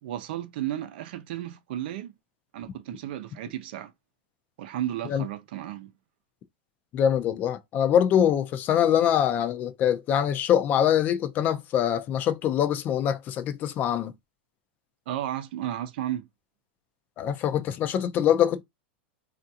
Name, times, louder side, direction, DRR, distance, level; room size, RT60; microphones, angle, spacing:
voice 1, 0.0-2.1 2.5-3.9 4.6-5.9 15.1-16.3, right 12 dB, 65° right, 0.6 m, -33 dB
voice 2, 6.9-14.1 17.2-18.6, left 9 dB, 30° left, 0.5 m, -24 dB
3.4 x 2.5 x 2.7 m
supercardioid pair, 140°, 6 cm